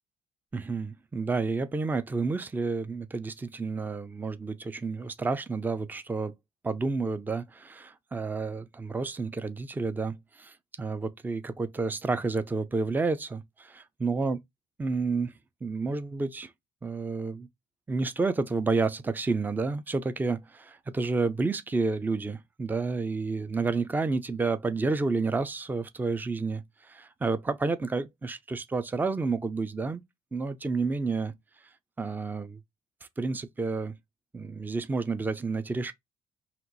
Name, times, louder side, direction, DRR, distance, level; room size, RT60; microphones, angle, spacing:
voice 1, 0.5-6.3 6.6-14.4 14.8-15.3 15.6-16.5 16.8-17.5 17.9-30.0 30.3-31.3 32.0-32.6 33.2-34.0 34.3-35.9, right 4 dB, 10° right, 0.4 m, -30 dB
4.3 x 2.5 x 3.9 m
cardioid pair, 110°, 17 cm